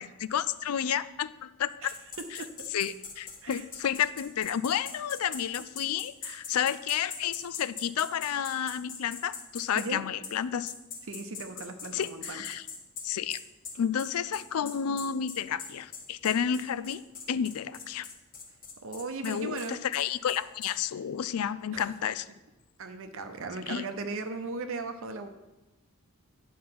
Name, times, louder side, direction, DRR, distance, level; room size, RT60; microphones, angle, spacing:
voice 1, 0.0-1.9 2.3-2.4 2.7-10.7 11.9-12.7 13.0-13.4 13.8-17.0 17.3-18.1 19.2-22.3 23.7-23.8, left 8 dB, 75° left, 16 dB, 0.4 m, -31 dB
sound 1, 1.9-9.9 10.2-10.3 10.7-20.7, left 5 dB, 40° left, 1.4 m, -41 dB
voice 2, 11.1-12.4 18.8-19.8 21.7-21.9 22.8-25.3, right 3 dB, 65° right, 7 dB, 0.7 m, -37 dB
9.6 x 5.5 x 5.8 m, 1.1 s
head